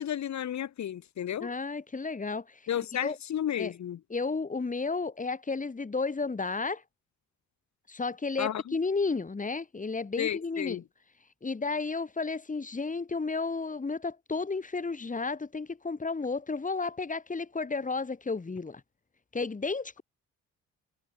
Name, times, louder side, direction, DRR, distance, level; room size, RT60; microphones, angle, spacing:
voice 1, 0.0-1.5 2.7-4.0 8.4-8.7 10.2-10.8, left 10 dB, 65° left, 5.4 m, -32 dB
voice 2, 1.4-2.6 3.0-3.2 3.6-3.7 4.1-6.8 7.9-10.8 11.4-18.8 19.3-20.0, left 4 dB, 25° left, 6.1 m, -32 dB
cardioid pair, 90°, 30 cm